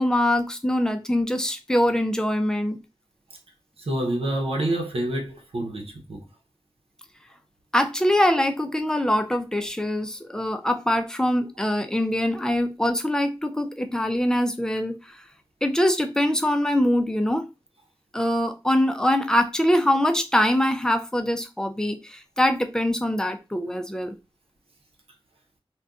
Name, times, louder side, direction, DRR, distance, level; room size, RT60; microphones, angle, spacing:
voice 1, 0.0-2.8 7.7-15.0 15.6-17.5 18.1-24.1, left 1 dB, 5° left, 0.5 m, -23 dB
voice 2, 3.8-6.2, right 1 dB, 90° right, 0.8 m, -27 dB
2.6 x 2.2 x 3.5 m
wide cardioid pair, 85°, 10 cm